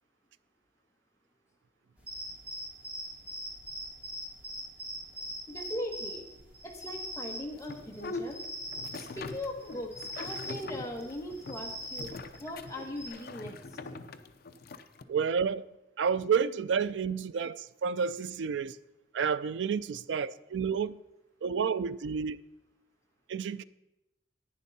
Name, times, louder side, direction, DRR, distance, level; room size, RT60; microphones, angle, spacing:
sound 1, 2.0-13.1, equal, 10° right, 2.3 m, -42 dB
voice 1, 5.5-6.2 6.6-8.4 9.0-12.1 12.4-13.5, left 1 dB, 15° left, 1.3 m, -39 dB
sound 2, 7.6-15.0, left 3 dB, 55° left, 0.6 m, -43 dB
voice 2, 15.1-15.7 16.0-18.8 19.1-21.0 21.4-22.4 23.3-23.6, right 6 dB, 85° right, 0.4 m, -30 dB
10.5 x 9.5 x 4.1 m
head